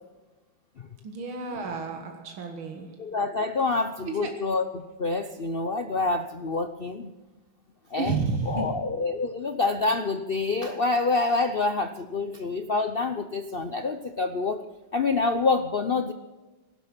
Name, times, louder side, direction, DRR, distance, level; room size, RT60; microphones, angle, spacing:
voice 1, 1.0-3.2 3.7-4.4 8.0-8.8, right 4 dB, 80° right, 4 dB, 2.5 m, -32 dB
voice 2, 3.0-7.1 7.9-8.1 8.5-14.6 14.9-16.1, left 3 dB, 70° left, 8 dB, 0.5 m, -27 dB
19.0 x 12.0 x 6.0 m, 1.2 s
omnidirectional pair, 2.2 m